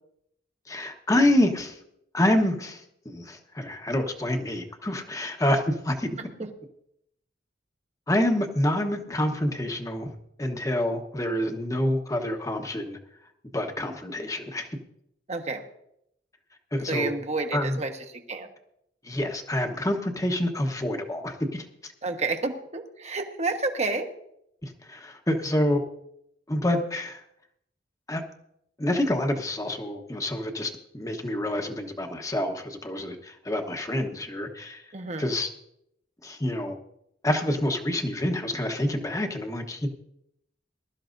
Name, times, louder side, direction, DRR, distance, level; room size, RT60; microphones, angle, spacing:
voice 1, 0.7-1.8 2.1-6.1 8.1-10.1 10.4-13.0 13.5-14.7 16.7-17.1 17.5-17.8 19.0-21.7 24.9-25.8 26.5-27.2 28.1-28.2 28.8-34.8 35.2-35.5 36.2-36.7 37.2-39.9, left 1 dB, 20° left, 5 dB, 1.1 m, -27 dB
voice 2, 15.3-15.6 16.9-18.5 22.0-24.1 34.9-35.2, right 3 dB, 35° right, 5 dB, 1.2 m, -30 dB
21.0 x 12.5 x 2.6 m, 0.77 s
head